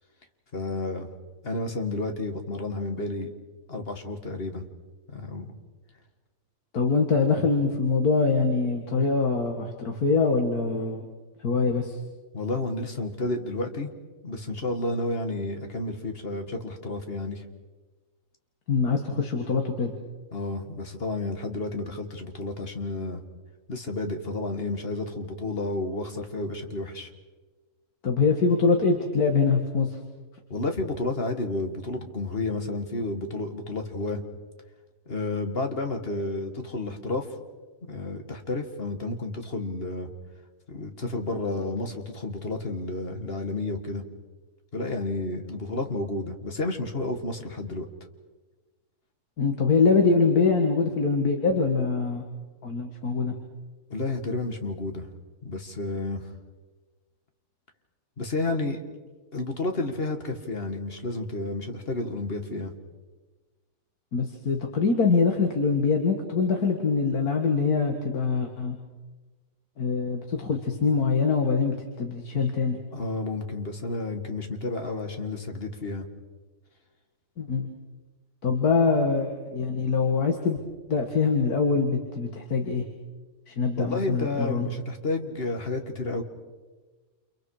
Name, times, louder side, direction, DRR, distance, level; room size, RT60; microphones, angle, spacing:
voice 1, 0.5-1.1 1.4-3.3 3.7-4.7 5.1-5.5 12.3-13.9 14.2-17.4 20.3-23.2 23.7-27.1 30.5-34.2 35.1-37.3 37.9-40.1 40.7-44.0 44.7-47.9 53.9-55.1 55.4-56.3 58.2-58.8 59.3-62.7 72.9-76.1 83.8-86.2, left 2 dB, 35° left, 5 dB, 2.2 m, -31 dB
voice 2, 6.7-11.1 11.4-12.0 18.7-19.9 28.0-29.9 49.4-52.2 52.6-53.3 64.1-68.8 69.8-72.8 77.4-77.7 78.4-80.6 80.9-82.8 83.5-84.7, left 4 dB, 70° left, 2 dB, 2.3 m, -24 dB
29.5 x 28.5 x 5.0 m, 1.3 s
omnidirectional pair, 1.7 m